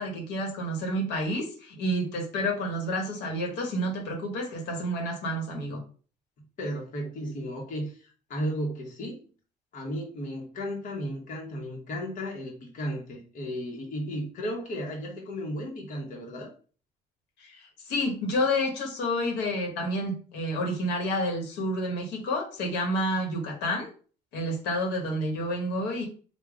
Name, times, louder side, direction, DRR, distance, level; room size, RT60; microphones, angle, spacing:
voice 1, 0.0-5.8 17.4-23.9 24.3-26.1, equal, 85° left, 1 dB, 1.2 m, -29 dB
voice 2, 6.6-9.3 9.7-16.5, equal, 50° left, -1 dB, 1.0 m, -34 dB
3.5 x 2.3 x 3.5 m, 0.40 s
cardioid pair, 110°, 17 cm